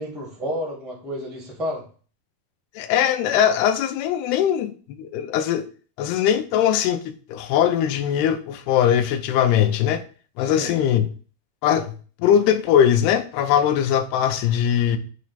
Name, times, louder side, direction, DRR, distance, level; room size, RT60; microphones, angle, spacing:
voice 1, 0.0-1.8 10.4-10.7, equal, ahead, 0.3 m, -30 dB
voice 2, 2.8-5.7 6.0-10.0 10.4-11.1 11.6-11.9 12.2-15.0, left 9 dB, 90° left, 2.6 m, -20 dB
9.2 x 3.1 x 4.2 m
omnidirectional pair, 4.5 m